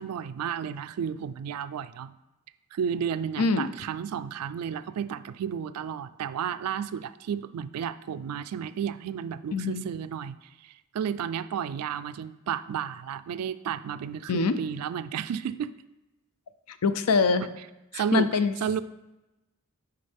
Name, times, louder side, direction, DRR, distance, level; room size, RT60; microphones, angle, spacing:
voice 1, 0.0-2.1 2.7-15.7 17.9-18.3 18.6-18.8, right 8 dB, 85° right, 14 dB, 0.3 m, -32 dB
voice 2, 3.4-3.7 9.5-9.8 14.3-14.6 16.7-17.4 17.9-18.5, left 4 dB, 80° left, 11 dB, 0.5 m, -24 dB
9.5 x 3.8 x 3.4 m, 1.0 s
head